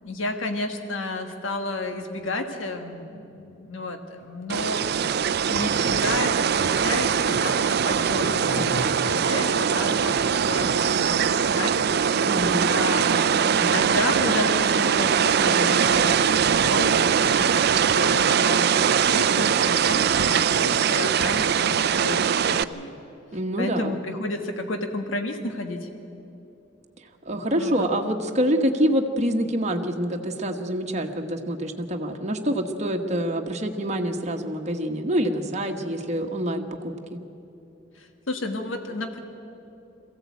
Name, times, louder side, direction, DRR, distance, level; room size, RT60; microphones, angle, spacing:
voice 1, 0.0-4.9 5.5-7.6 7.8-11.9 12.6-17.0 17.4-23.0 23.6-25.9 27.5-27.9 38.0-39.2, left 2 dB, 90° left, 5 dB, 1.5 m, -32 dB
sound 1, 4.5-22.6, right 7 dB, 55° right, 0.5 m, -22 dB
Skateboard, 5.3-10.8, left 1 dB, 40° left, 1.0 m, -39 dB
voice 2, 12.3-12.7 23.3-23.9 27.2-37.2, equal, 35° right, 3 dB, 1.3 m, -26 dB
22.5 x 15.5 x 8.4 m, 2.8 s
head